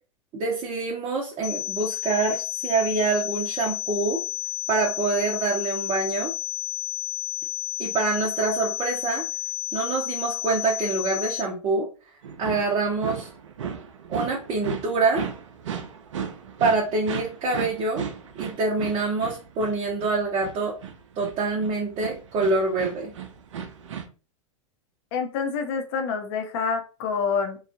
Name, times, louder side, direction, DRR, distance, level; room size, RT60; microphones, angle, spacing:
voice 1, 0.3-4.2 4.7-6.3 7.8-9.3 9.7-11.9 12.4-13.3 14.1-15.2 16.6-18.0 18.4-20.7 21.2-23.1, right 3 dB, 30° right, -2 dB, 0.8 m, -25 dB
sound 1, 1.4-11.4, left 17 dB, 20° left, 0.4 m, -31 dB
sound 2, 12.2-24.1, right 7 dB, 70° right, 0.5 m, -36 dB
voice 2, 25.1-27.6, left 5 dB, 50° left, 5 dB, 0.8 m, -27 dB
3.1 x 2.4 x 2.5 m, 0.35 s
figure-of-eight pair, 95°, 17 cm